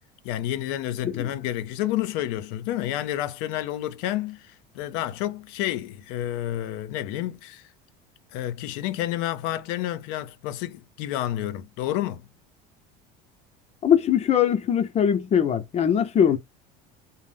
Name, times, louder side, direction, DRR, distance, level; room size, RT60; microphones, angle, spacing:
voice 1, 0.2-7.6 8.3-12.3, left 13 dB, 75° left, 0.6 m, -30 dB
voice 2, 13.8-16.4, left 8 dB, 30° left, 0.6 m, -21 dB
2.5 x 2.0 x 3.4 m
supercardioid pair, 115°, 20 cm